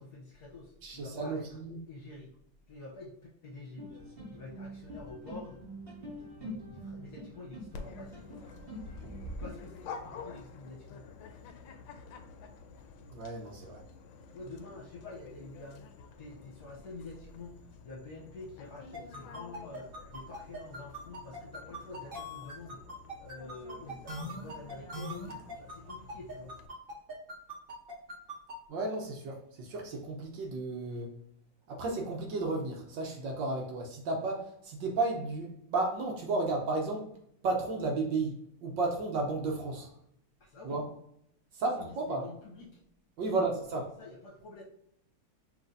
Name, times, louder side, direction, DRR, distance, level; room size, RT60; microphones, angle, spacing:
voice 1, 0.0-1.6 1.9-2.3 2.7-3.9 4.3-5.6 5.9-8.5 9.4-11.0 14.3-22.8 23.2-26.5 39.7-39.9 40.4-40.8 41.5-42.8 43.2-43.6 44.0-44.6, left 3 dB, 55° left, -2 dB, 1.2 m, -48 dB
voice 2, 0.8-1.8 13.1-13.8 28.7-31.1 31.7-37.1 37.4-38.3 38.6-39.9 40.6-40.8 41.5-42.2 43.2-43.8, right 3 dB, 65° right, 1 dB, 1.4 m, -33 dB
sound 1, 3.8-9.5, equal, 30° right, 1.3 m, -44 dB
Dog, 7.7-26.7, left 5 dB, 75° left, 1.2 m, -50 dB
sound 2, 18.9-28.5, equal, 50° right, 0.6 m, -41 dB
5.8 x 3.2 x 2.6 m, 0.73 s
omnidirectional pair, 2.4 m